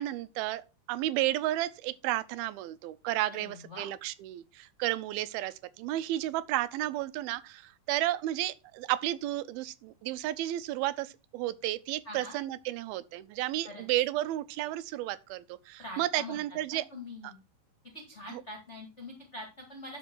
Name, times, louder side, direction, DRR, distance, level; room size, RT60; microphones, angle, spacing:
voice 1, 0.0-16.8 17.2-17.3 18.3-18.4, right 15 dB, 90° right, 2.5 m, -32 dB
voice 2, 3.3-3.9 12.0-12.4 13.6-13.8 15.8-17.4 17.9-20.0, left 1 dB, 30° left, 1.4 m, -44 dB
12.0 x 5.0 x 4.6 m
omnidirectional pair, 4.3 m